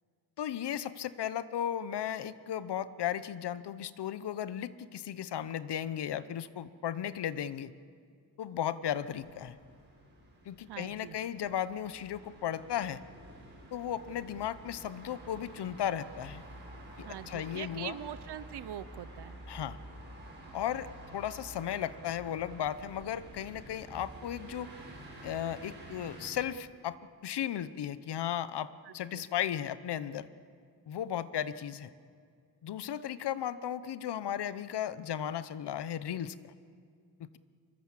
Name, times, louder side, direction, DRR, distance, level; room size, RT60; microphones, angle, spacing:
voice 1, 0.4-7.7 8.4-9.6 10.5-13.0 13.7-16.4 17.0-18.0 19.5-19.8 20.5-24.7 25.2-27.0 27.2-30.3 30.9-31.9 32.6-36.5 37.2-37.4, left 10 dB, 80° left, 15 dB, 0.9 m, -35 dB
sound 1, 9.1-26.3, right 1 dB, 25° right, 7.5 m, -50 dB
voice 2, 10.7-11.2 17.0-19.4 28.8-29.2, right 11 dB, 75° right, 15 dB, 0.8 m, -43 dB
24.5 x 21.5 x 7.5 m, 2.2 s
wide cardioid pair, 175°, 40 cm